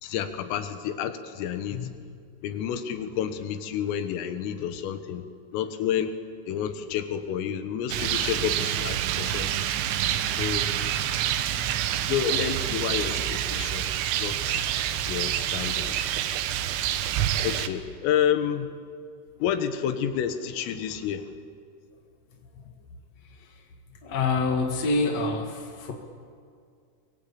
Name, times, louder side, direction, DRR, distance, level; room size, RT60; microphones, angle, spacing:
voice 1, 0.0-1.9 2.4-5.2 5.5-6.1 6.5-9.7 10.4-10.7 12.1-13.9 14.2-14.7 15.1-15.9 17.4-18.7 19.4-21.3, left 9 dB, 90° left, 9 dB, 4.0 m, -29 dB
Rain, 7.9-17.7, right 11 dB, 85° right, 3.7 m, -27 dB
voice 2, 24.0-25.9, left 3 dB, 65° left, 2 dB, 1.7 m, -26 dB
23.0 x 23.0 x 8.6 m, 2.2 s
omnidirectional pair, 5.8 m